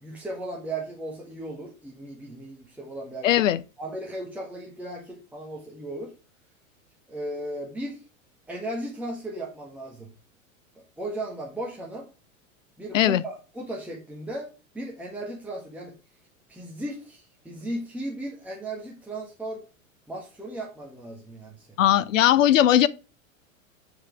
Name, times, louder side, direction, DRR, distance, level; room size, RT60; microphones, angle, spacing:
voice 1, 0.0-3.3 3.8-6.1 7.1-8.0 8.5-10.1 11.0-12.1 12.8-15.9 16.5-19.6 20.1-21.8, right 1 dB, 5° right, 1.6 m, -36 dB
voice 2, 3.2-3.6 12.9-13.2 21.8-22.9, left 11 dB, 65° left, 0.6 m, -19 dB
8.6 x 4.9 x 3.3 m
figure-of-eight pair, 90°, 41 cm